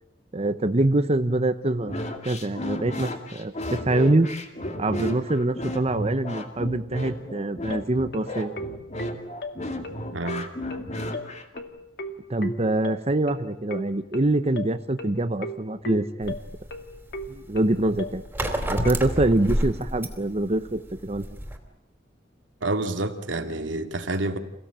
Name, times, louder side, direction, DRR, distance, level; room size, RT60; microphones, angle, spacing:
voice 1, 0.3-4.3 4.8-8.5 12.3-16.3 17.3-18.2 18.7-21.3, right 2 dB, 35° right, 0.9 m, -24 dB
sound 1, 1.9-11.6, left 1 dB, 40° left, 2.5 m, -33 dB
sound 2, 7.7-18.9, left 1 dB, 60° left, 2.1 m, -36 dB
voice 2, 10.1-10.5 22.6-24.4, right 2 dB, 90° right, 2.4 m, -28 dB
sound 3, 16.2-21.6, right 1 dB, 10° right, 3.3 m, -30 dB
28.5 x 17.0 x 8.9 m
head